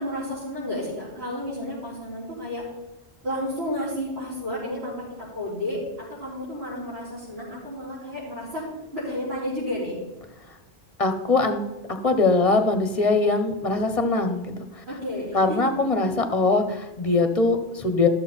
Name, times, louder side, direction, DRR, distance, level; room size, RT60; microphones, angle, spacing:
voice 1, 0.0-2.6 3.2-5.8 6.1-8.7 8.9-10.0 14.9-15.7, left 1 dB, 70° right, -11 dB, 4.6 m, -31 dB
voice 2, 11.0-11.6 11.9-14.5 15.3-18.1, left 3 dB, 35° left, 8 dB, 1.1 m, -22 dB
14.0 x 6.9 x 4.4 m, 1.1 s
omnidirectional pair, 1.1 m